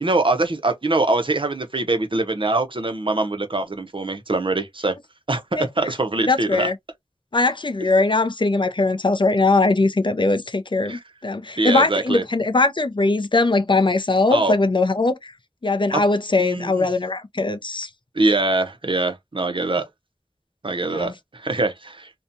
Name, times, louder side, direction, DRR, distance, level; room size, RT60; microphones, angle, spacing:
voice 1, 0.0-4.9 5.3-5.4 5.8-6.7 10.9-11.0 11.6-12.2 14.3-14.5 16.4-16.9 18.2-19.8 20.6-22.1, right 2 dB, 50° right, 0.6 m, -23 dB
voice 2, 6.2-6.8 7.3-15.3 15.6-17.9 20.9-21.1, left 3 dB, 45° left, 0.4 m, -20 dB
2.7 x 2.2 x 2.6 m
wide cardioid pair, 50°, 11 cm